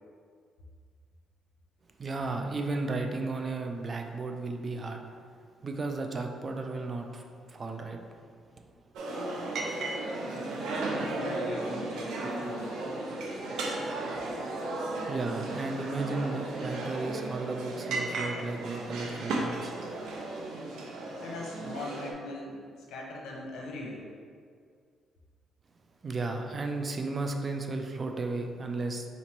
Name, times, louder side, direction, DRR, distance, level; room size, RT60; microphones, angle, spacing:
voice 1, 2.0-5.2 5.6-8.0 15.1-19.8 26.0-29.0, right 3 dB, 40° right, 4 dB, 0.5 m, -34 dB
sound 1, 8.9-22.1, right 2 dB, 80° right, 0.7 m, -35 dB
voice 2, 10.3-12.7 21.2-24.1, left 2 dB, 80° left, -1 dB, 0.9 m, -41 dB
4.0 x 3.1 x 4.3 m, 2.1 s
cardioid pair, 90°, 0 cm